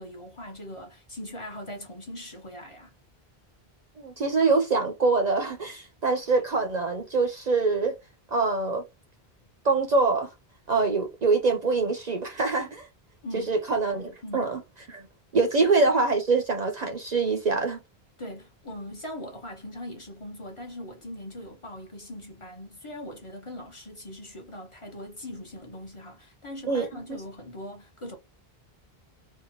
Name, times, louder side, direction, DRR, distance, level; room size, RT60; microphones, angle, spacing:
voice 1, 0.0-2.9 13.2-13.8 14.2-14.5 15.6-15.8 18.2-28.2, left 1 dB, 35° left, 0.8 m, -40 dB
voice 2, 4.0-7.9 8.3-8.8 9.6-10.3 10.7-12.9 13.3-14.6 14.9-15.1 15.3-17.8 26.7-26.9, right 3 dB, 50° right, 0.6 m, -24 dB
2.8 x 2.2 x 2.8 m
omnidirectional pair, 1.1 m